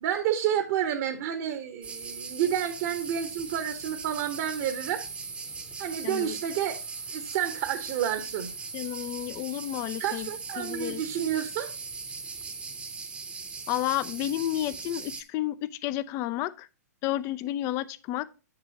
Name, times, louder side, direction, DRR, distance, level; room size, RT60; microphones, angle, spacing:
voice 1, 0.0-5.0 5.8-6.8 7.1-8.5 10.0-11.7, right 10 dB, 45° right, 1.0 m, -30 dB
sound 1, 1.8-15.2, right 4 dB, 10° right, 0.9 m, -39 dB
voice 2, 6.0-6.4 8.7-10.3 10.6-11.0 13.7-16.7 17.0-18.3, left 14 dB, 30° left, 0.5 m, -31 dB
7.6 x 6.7 x 2.8 m
figure-of-eight pair, 115°, 9 cm